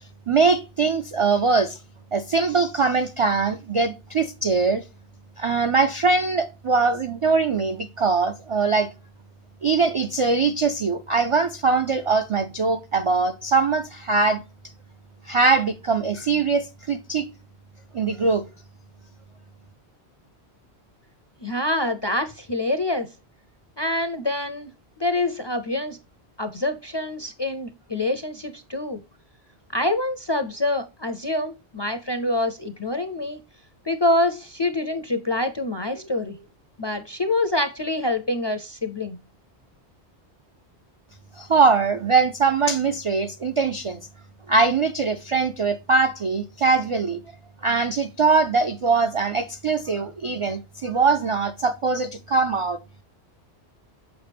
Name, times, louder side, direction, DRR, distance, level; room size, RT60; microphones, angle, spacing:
voice 1, 0.3-1.8 2.1-4.8 5.4-8.9 9.6-14.4 15.3-17.3 17.9-18.4 41.4-44.0 44.5-47.2 47.6-52.8, right 4 dB, 60° right, 0.3 m, -22 dB
voice 2, 21.4-23.1 23.8-24.7 25.0-26.0 26.4-29.0 29.7-33.4 33.9-36.4 36.8-39.2, left 2 dB, 40° left, 0.4 m, -26 dB
7.0 x 5.6 x 3.4 m
omnidirectional pair, 1.1 m